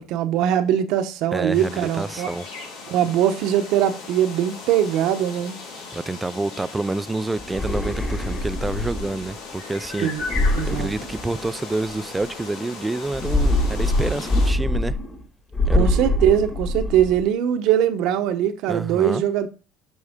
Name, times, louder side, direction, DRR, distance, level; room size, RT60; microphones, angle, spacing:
voice 1, 0.0-2.3 2.9-5.6 10.0-10.2 10.5-10.9 15.7-19.5, right 10 dB, 70° right, 0.9 m, -21 dB
voice 2, 1.3-2.4 5.9-10.1 10.7-15.0 15.7-15.9 18.7-19.2, right 2 dB, 10° right, 0.4 m, -28 dB
sound 1, 1.5-14.5, left 4 dB, 80° left, 3.2 m, -37 dB
sound 2, 7.4-9.3 10.2-11.7 13.1-15.2 15.5-17.2, left 1 dB, 20° left, 2.0 m, -23 dB
7.9 x 5.5 x 3.6 m
supercardioid pair, 110°, 0 cm